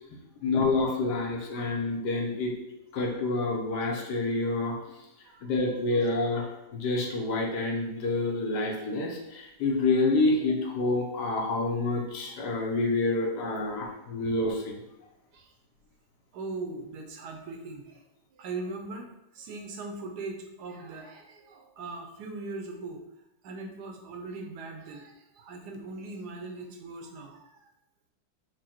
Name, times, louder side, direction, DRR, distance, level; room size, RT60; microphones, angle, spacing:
voice 1, 0.4-2.5 2.9-4.7 5.4-14.8, left 2 dB, 70° left, 0 dB, 1.3 m, -28 dB
voice 2, 16.3-18.0 18.3-19.0 19.3-23.0 23.4-27.7, right 3 dB, 75° right, 3 dB, 1.1 m, -40 dB
4.7 x 2.0 x 4.3 m, 0.90 s
omnidirectional pair, 1.9 m